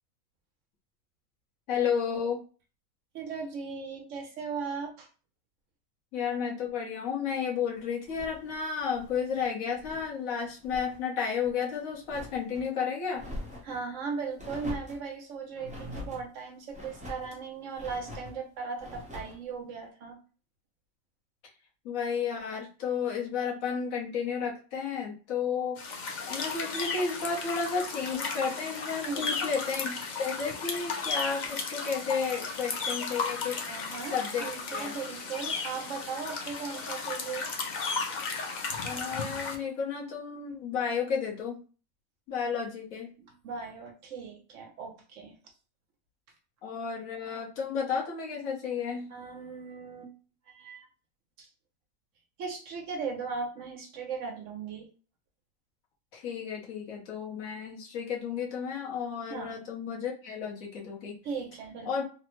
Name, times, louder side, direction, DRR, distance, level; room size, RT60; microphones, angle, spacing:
voice 1, 1.7-2.4 6.1-13.2 21.8-25.8 26.3-33.7 34.1-34.9 38.8-41.6 42.3-43.1 46.6-49.1 56.1-61.2 61.8-62.0, left 6 dB, 70° left, -2 dB, 1.3 m, -32 dB
voice 2, 3.1-5.1 13.6-20.2 29.0-29.4 33.7-37.5 43.2-45.4 49.1-50.1 50.5-50.9 51.4-51.5 52.4-54.9 59.3-59.6 61.2-61.9, right 5 dB, 65° right, 3 dB, 0.9 m, -38 dB
sound 1, 8.0-10.1 10.4-11.0 11.4-12.7 13.1-13.8 14.4-15.1 15.6-16.2 16.7-17.3 17.7-18.4 18.8-19.4, left 2 dB, 10° right, 0.5 m, -43 dB
sound 2, 25.8-39.6, left 4 dB, 90° left, 0.4 m, -35 dB
3.2 x 2.0 x 3.0 m, 0.36 s
omnidirectional pair, 1.5 m